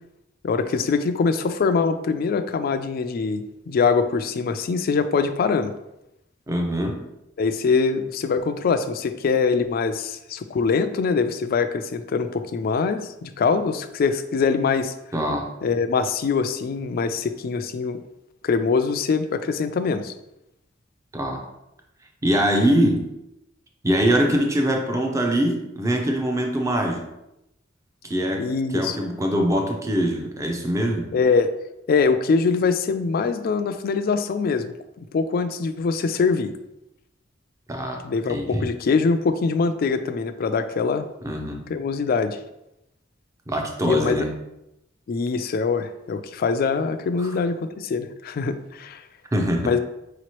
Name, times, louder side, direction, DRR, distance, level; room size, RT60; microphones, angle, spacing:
voice 1, 0.4-5.7 7.4-14.9 15.6-18.0 18.4-20.1 28.4-29.0 31.1-31.5 31.9-34.7 35.1-36.5 38.0-41.1 41.7-42.4 43.8-44.2 45.1-49.0 49.6-49.8, left 5 dB, 50° left, 10 dB, 0.3 m, -23 dB
voice 2, 6.5-7.0 15.1-15.5 21.1-21.4 22.2-23.1 23.8-27.0 28.0-31.1 37.7-38.0 38.3-38.7 41.2-41.6 43.5-44.3 47.2-47.4 49.3-49.7, equal, 15° right, 2 dB, 0.6 m, -23 dB
4.8 x 2.9 x 3.0 m, 0.87 s
head